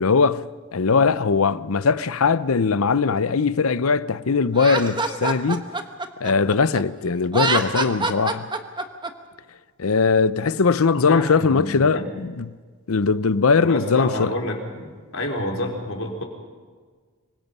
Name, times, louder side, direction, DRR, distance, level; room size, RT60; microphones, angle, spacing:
voice 1, 0.0-5.7 6.2-8.5 9.8-12.5 12.9-14.3, left 5 dB, 90° left, 0.7 m, -20 dB
Laughter, 4.5-6.8 7.2-9.1, right 3 dB, 20° right, 1.3 m, -25 dB
voice 2, 10.9-12.1 13.6-16.2, left 1 dB, 65° left, 4.2 m, -29 dB
25.5 x 24.0 x 5.5 m
head